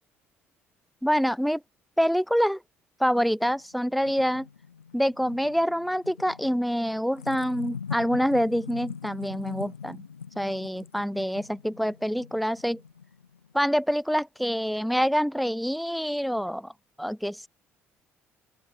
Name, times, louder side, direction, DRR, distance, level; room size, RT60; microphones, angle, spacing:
voice 1, 1.0-1.6 2.0-2.6 3.0-4.5 4.9-10.0 10.4-12.8 13.5-16.7 17.0-17.5, equal, ahead, 0.4 m, -26 dB
sound 1, 3.4-13.5, left 6 dB, 85° left, 0.3 m, -42 dB
open air
figure-of-eight pair, 50°, 7 cm